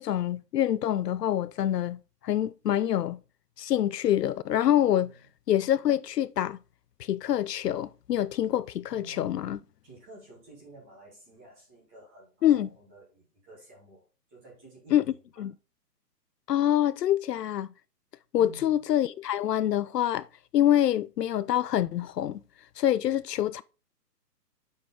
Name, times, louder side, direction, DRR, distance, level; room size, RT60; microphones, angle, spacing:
voice 1, 0.0-2.0 2.2-3.2 3.6-5.1 5.5-6.6 7.0-9.6 12.4-12.7 14.9-15.1 15.4-15.5 16.5-17.7 18.3-20.3 20.5-22.4 22.8-23.6, left 11 dB, 75° left, 0.5 m, -26 dB
voice 2, 8.9-9.3 9.8-15.4 18.4-18.8, right 3 dB, 10° right, 0.9 m, -51 dB
7.5 x 4.5 x 3.6 m
hypercardioid pair, 165°, 49 cm